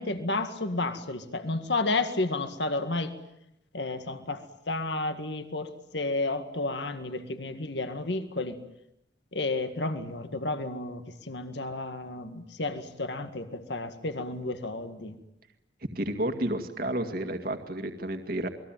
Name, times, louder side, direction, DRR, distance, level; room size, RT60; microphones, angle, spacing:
voice 1, 0.0-3.1 3.7-8.6 9.3-15.1, left 2 dB, 70° left, 8 dB, 2.0 m, -32 dB
voice 2, 16.0-18.5, right 1 dB, 55° right, 6 dB, 2.1 m, -31 dB
29.0 x 21.0 x 9.2 m, 0.81 s
head